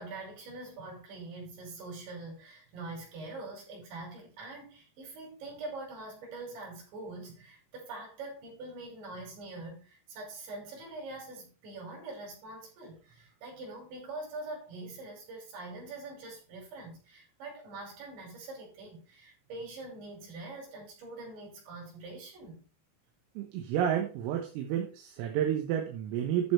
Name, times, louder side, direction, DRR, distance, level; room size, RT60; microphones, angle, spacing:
voice 1, 0.0-22.6, right 2 dB, 60° right, 7.5 m, -44 dB
voice 2, 23.4-26.5, right 10 dB, 80° right, 3.9 m, -30 dB
11.5 x 6.8 x 4.3 m
omnidirectional pair, 5.9 m